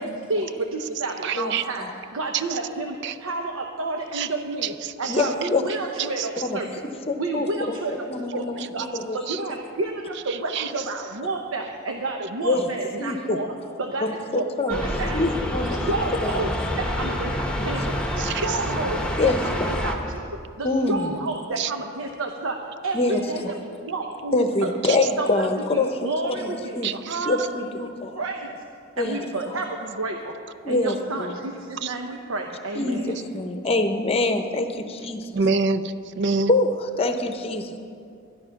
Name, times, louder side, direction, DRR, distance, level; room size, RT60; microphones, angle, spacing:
voice 1, 0.0-1.8 2.1-6.7 7.2-8.0 8.3-8.5 8.7-8.9 9.1-13.5 13.8-15.2 15.6-16.5 16.8-20.2 20.6-23.6 23.9-24.8 25.2-27.6 28.1-28.6 29.0-30.4 30.7-33.2, right 2 dB, 90° right, 2 dB, 0.8 m, -30 dB
voice 2, 1.2-1.6 2.3-2.6 3.0-3.2 4.1-4.3 4.6-5.5 6.0-6.5 8.6-8.7 9.3-9.4 10.3-10.9 18.2-18.6 21.6-21.7 24.8-25.0 26.8-27.5 31.8-31.9 35.3-36.5, right 5 dB, 55° right, 13 dB, 0.4 m, -27 dB
voice 3, 5.1-5.6 6.4-6.6 7.1-7.7 8.1-9.2 12.4-12.7 13.0-13.4 14.0-14.8 15.1-15.8 16.2-16.3 17.6-17.7 19.2-19.7 20.6-21.1 22.9-23.2 24.3-25.9 26.2-26.9 27.3-28.2 29.0-29.2 30.6-31.3 32.7-35.3 36.5-36.7 37.0-37.8, left 2 dB, 30° left, 7 dB, 0.8 m, -25 dB
sound 1, 14.7-19.9, left 1 dB, 5° left, 1.0 m, -27 dB
11.5 x 11.5 x 5.8 m, 2.5 s
head